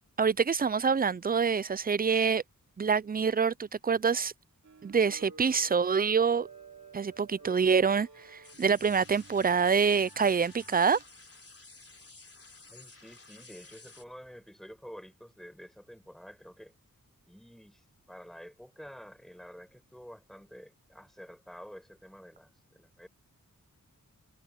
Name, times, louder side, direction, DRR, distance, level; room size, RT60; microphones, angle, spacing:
voice 1, 0.2-2.4 2.8-4.3 4.8-6.5 6.9-11.0, right 6 dB, 25° right, 0.4 m, -26 dB
sound 1, 4.6-11.0, right 4 dB, 55° right, 3.0 m, -53 dB
sound 2, 8.4-14.0, left 3 dB, 40° left, 3.7 m, -53 dB
voice 2, 12.7-16.7 17.3-23.1, equal, ahead, 5.0 m, -49 dB
wide cardioid pair, 70°, 34 cm